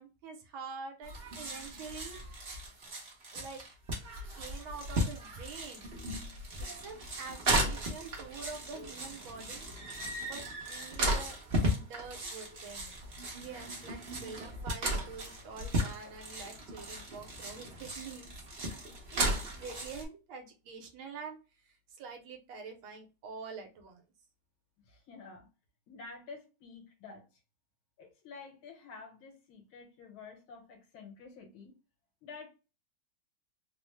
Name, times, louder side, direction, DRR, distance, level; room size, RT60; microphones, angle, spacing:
voice 1, 0.0-2.6 3.3-3.6 4.3-5.9 6.6-9.7 10.3-11.4 11.7-12.9 13.3-18.3 19.1-21.4 21.7-24.0, right 5 dB, 75° right, 1.6 m, -46 dB
sound 1, 1.0-20.0, right 1 dB, 50° right, 0.7 m, -36 dB
voice 2, 24.9-25.5 25.9-27.3 28.0-31.7 32.2-32.5, left 4 dB, 75° left, 1.9 m, -49 dB
3.9 x 2.0 x 3.1 m
omnidirectional pair, 2.3 m